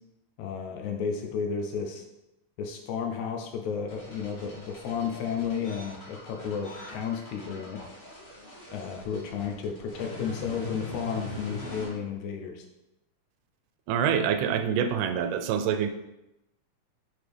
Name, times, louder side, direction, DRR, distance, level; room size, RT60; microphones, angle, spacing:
voice 1, 0.4-2.0 2.6-7.8 8.7-12.6, left 6 dB, 75° left, 3 dB, 1.8 m, -33 dB
sound 1, 3.9-11.9, left 2 dB, 60° left, 2.9 m, -42 dB
voice 2, 13.9-15.9, right 8 dB, 85° right, 8 dB, 2.1 m, -26 dB
6.1 x 4.8 x 3.4 m, 0.94 s
omnidirectional pair, 3.7 m